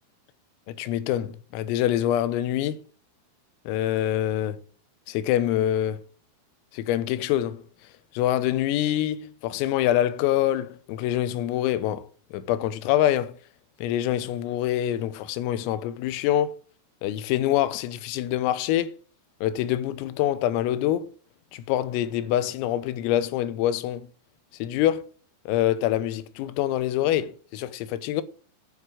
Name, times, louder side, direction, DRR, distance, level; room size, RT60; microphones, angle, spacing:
voice 1, 0.7-2.8 3.7-4.6 5.1-6.0 6.7-7.6 8.1-13.4 13.8-16.5 17.0-19.0 19.4-21.1 21.5-24.1 24.5-25.1 25.5-28.2, left 12 dB, 85° left, 3.6 m, -25 dB
9.9 x 7.3 x 7.8 m
omnidirectional pair, 6.0 m